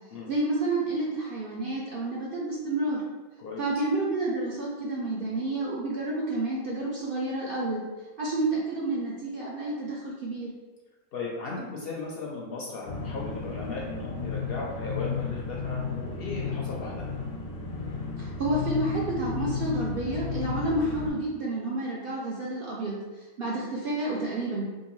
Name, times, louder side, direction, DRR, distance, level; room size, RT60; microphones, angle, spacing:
voice 1, 0.3-3.0 3.6-7.8 8.2-10.5 18.2-22.9 23.4-24.6, right 2 dB, 60° right, -4 dB, 0.6 m, -29 dB
voice 2, 11.1-17.1, left 3 dB, 60° left, -3 dB, 0.6 m, -36 dB
sound 1, 12.9-21.1, left 5 dB, 85° left, 1.1 m, -33 dB
3.6 x 2.5 x 3.0 m, 1.2 s
omnidirectional pair, 1.4 m